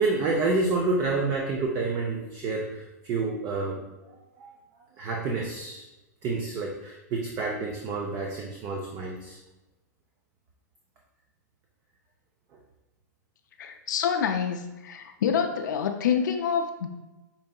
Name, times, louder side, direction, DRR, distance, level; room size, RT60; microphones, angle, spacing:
voice 1, 0.0-3.8 4.4-4.5 5.0-5.8 6.2-9.4, right 3 dB, 30° right, -1 dB, 0.5 m, -28 dB
voice 2, 13.6-16.9, left 7 dB, 80° left, 4 dB, 0.4 m, -27 dB
5.3 x 2.6 x 2.3 m, 1.1 s
hypercardioid pair, 140°, 10 cm